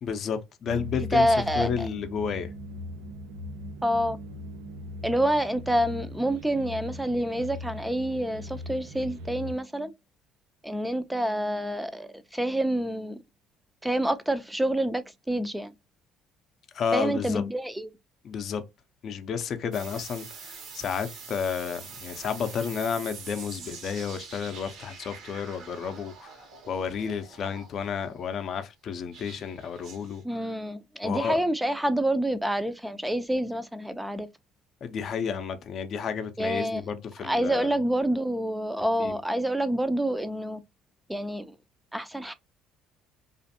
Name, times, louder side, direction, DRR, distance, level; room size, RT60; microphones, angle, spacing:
voice 1, 0.0-1.3 1.6-2.5 16.7-17.4 18.2-18.6 19.0-30.2 31.0-31.4 34.8-37.7 39.0-39.2, left 7 dB, 50° left, 0.5 m, -31 dB
sound 1, 0.7-9.5, left 1 dB, 85° right, 0.4 m, -39 dB
voice 2, 1.1-1.9 3.8-4.2 5.0-9.9 10.6-13.2 13.8-15.7 16.9-17.9 30.2-34.3 36.4-36.8 37.2-40.6 41.1-41.6 41.9-42.3, right 1 dB, 5° right, 0.4 m, -27 dB
sound 2, 19.7-28.1 29.1-30.2, right 5 dB, 65° right, 1.0 m, -45 dB
2.5 x 2.5 x 2.6 m
supercardioid pair, 90°, 0 cm